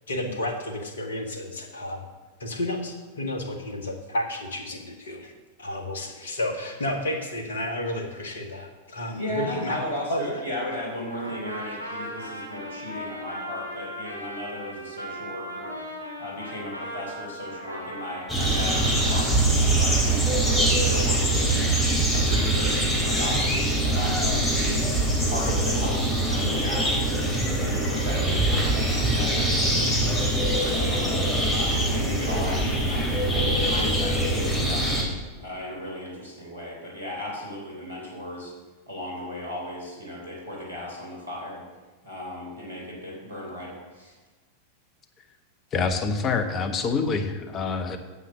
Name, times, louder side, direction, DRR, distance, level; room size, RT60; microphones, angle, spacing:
voice 1, 0.1-2.1 2.4-5.3 5.6-9.8 10.1-10.4 11.9-12.0, left 1 dB, 65° left, 3 dB, 1.6 m, -31 dB
voice 2, 9.1-15.8 16.2-24.9 25.2-27.2 27.6-35.0 35.4-38.5 38.9-41.6 42.0-44.1, left 1 dB, 80° right, -2 dB, 3.3 m, -36 dB
Trumpet, 11.1-19.3, equal, 90° left, 2.8 m, -38 dB
sound 1, 18.3-35.0, right 1 dB, 10° left, 3.7 m, -23 dB
voice 3, 45.7-48.0, left 4 dB, 30° left, 8 dB, 1.2 m, -26 dB
9.7 x 7.7 x 6.3 m, 1.3 s
figure-of-eight pair, 90°, 0 cm